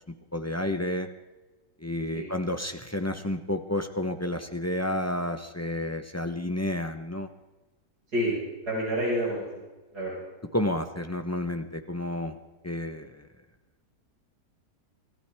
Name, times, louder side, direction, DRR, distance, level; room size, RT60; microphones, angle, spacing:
voice 1, 0.3-1.1 1.8-7.3 10.5-12.4 12.6-13.3, left 1 dB, 15° left, 7 dB, 0.5 m, -30 dB
voice 2, 8.7-9.4 9.9-10.3, equal, 70° right, -7 dB, 6.1 m, -28 dB
25.5 x 15.0 x 3.5 m, 1.2 s
omnidirectional pair, 1.8 m